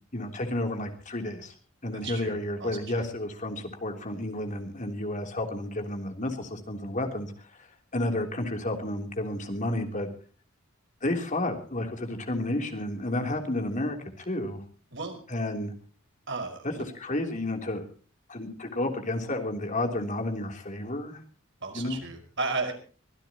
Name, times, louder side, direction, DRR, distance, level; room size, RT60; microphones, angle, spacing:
voice 1, 0.0-1.5 1.8-7.7 7.9-10.1 11.0-14.6 15.3-15.7 16.6-16.7 17.0-17.8 18.3-21.2 21.7-22.0, left 1 dB, 40° left, 4 dB, 3.4 m, -31 dB
voice 2, 1.9-3.1 14.9-15.2 16.3-16.9 21.6-22.7, right 3 dB, 60° right, 5 dB, 5.3 m, -34 dB
25.0 x 16.0 x 3.0 m, 0.39 s
head